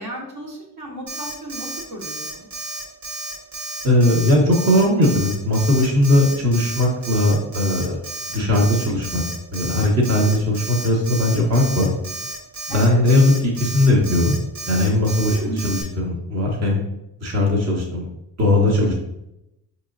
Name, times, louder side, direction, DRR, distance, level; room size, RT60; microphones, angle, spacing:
voice 1, 0.0-2.5 8.3-8.7 12.7-13.0 15.3-15.7, right 1 dB, 60° right, -2 dB, 1.4 m, -34 dB
Alarm, 1.1-15.8, right 2 dB, 90° right, 1.3 m, -32 dB
voice 2, 3.8-8.0 8.3-9.2 9.5-11.9 12.7-14.4 14.7-16.8 17.2-18.1 18.4-18.9, left 1 dB, 40° right, -3 dB, 1.1 m, -18 dB
4.7 x 2.9 x 2.5 m, 0.86 s
supercardioid pair, 55°, 42 cm